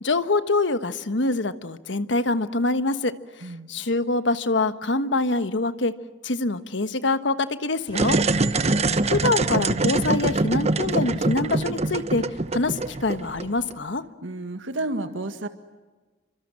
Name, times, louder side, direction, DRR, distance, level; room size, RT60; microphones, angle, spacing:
voice 1, 0.0-5.9 6.2-8.2 9.1-12.2 12.5-14.0, left 2 dB, 70° left, 11 dB, 1.4 m, -25 dB
sound 1, 7.9-13.7, right 3 dB, 35° right, 0.9 m, -24 dB
voice 2, 8.3-8.7 14.2-15.5, right 2 dB, 90° right, 8 dB, 1.8 m, -32 dB
29.5 x 25.0 x 7.6 m, 1.3 s
head